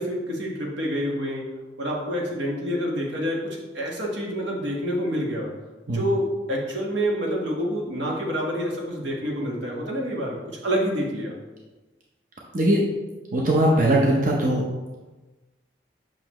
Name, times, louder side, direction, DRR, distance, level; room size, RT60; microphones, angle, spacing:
voice 1, 0.0-1.4 1.8-5.5 5.9-11.3, equal, 80° right, -2 dB, 1.6 m, -27 dB
voice 2, 13.3-14.6, right 1 dB, 45° right, -3 dB, 0.8 m, -20 dB
6.7 x 6.0 x 3.1 m, 1.2 s
head